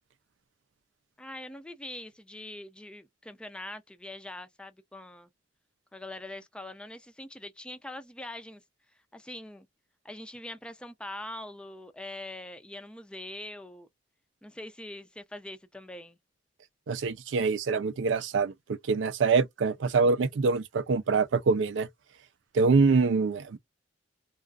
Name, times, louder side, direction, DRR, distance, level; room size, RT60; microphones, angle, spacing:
voice 1, 1.2-5.3 5.9-8.6 9.1-9.7 10.0-13.9 14.4-16.2, left 1 dB, 5° left, 0.3 m, -43 dB
voice 2, 16.9-21.9 22.5-23.6, right 4 dB, 85° right, 0.4 m, -25 dB
2.4 x 2.3 x 2.3 m
head